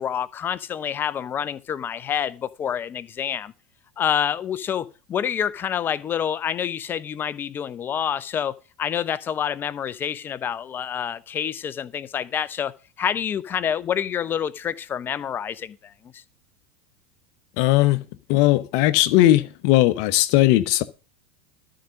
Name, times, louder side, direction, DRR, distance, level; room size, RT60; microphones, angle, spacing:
voice 1, 0.0-3.5 4.0-16.2, left 8 dB, 30° left, 0.8 m, -27 dB
voice 2, 17.6-18.0 18.3-20.8, left 15 dB, 55° left, 1.0 m, -18 dB
13.0 x 5.1 x 6.5 m
hypercardioid pair, 85°, 7 cm